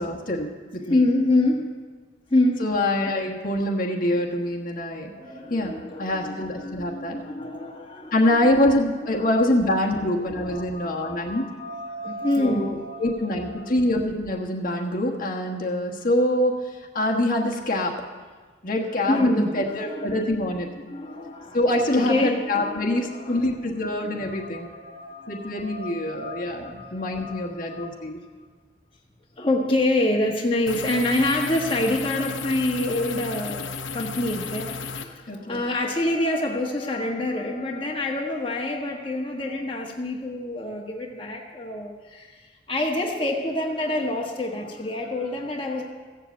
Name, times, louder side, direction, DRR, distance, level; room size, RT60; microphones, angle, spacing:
voice 1, 0.0-1.0 2.6-5.1 5.5-7.2 8.1-11.5 12.4-18.0 18.6-20.7 21.5-24.7 25.3-28.2 35.3-35.6, left 1 dB, 45° left, 0 dB, 1.3 m, -25 dB
voice 2, 0.8-1.7 2.3-2.7 5.1-8.7 9.0-9.5 10.2-13.7 18.7-23.6 24.1-28.0 29.4-42.4 42.7-45.8, left 1 dB, 25° left, -1 dB, 1.3 m, -27 dB
sound 1, 30.7-35.1, left 5 dB, 90° left, 0.8 m, -33 dB
15.0 x 7.5 x 8.2 m, 1.4 s
head